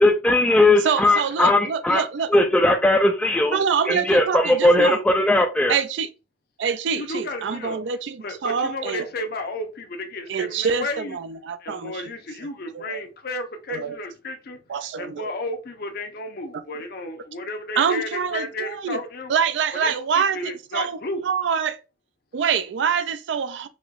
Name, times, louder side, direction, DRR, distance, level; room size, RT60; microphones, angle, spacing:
voice 1, 0.0-2.0 2.3-3.6 3.9-5.8, left 2 dB, 5° left, 0.3 m, -18 dB
voice 2, 0.8-2.3 3.5-5.0 5.7-6.1 6.6-9.0 10.3-12.0 12.7-13.0 13.7-14.0 14.7-15.3 16.5-16.6 17.8-19.0 19.3-21.8 22.3-23.7, right 6 dB, 70° right, 0.4 m, -25 dB
voice 3, 7.0-7.8 8.2-11.2 11.6-19.3 19.8-20.0 20.3-21.2, left 2 dB, 55° left, 0.6 m, -33 dB
4.2 x 2.9 x 2.4 m
head